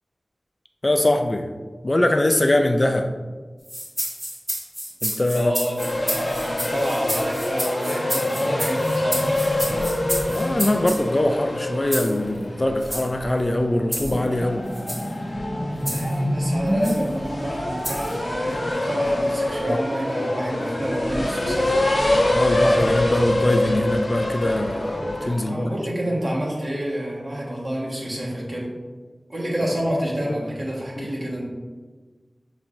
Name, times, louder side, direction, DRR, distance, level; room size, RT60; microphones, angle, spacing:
voice 1, 0.8-1.5 1.8-3.1 5.0-5.5 9.6-9.9 10.3-14.7 19.7-19.8 22.3-25.7 31.0-31.1, left 1 dB, 40° left, 5 dB, 0.4 m, -22 dB
sound 1, 3.6-11.0 11.9-12.2 12.8-13.1 13.9-14.2 14.7-15.1 15.9-16.2 16.8-17.0 17.8-18.1, equal, 20° right, 1.5 m, -30 dB
voice 2, 5.3-9.4 15.9-22.0 25.4-28.7 29.3-31.4, equal, 60° right, -5 dB, 1.3 m, -28 dB
sound 2, 5.8-25.3, left 1 dB, 65° left, 0.9 m, -25 dB
6.8 x 3.0 x 2.6 m, 1.4 s
wide cardioid pair, 55°, 0 cm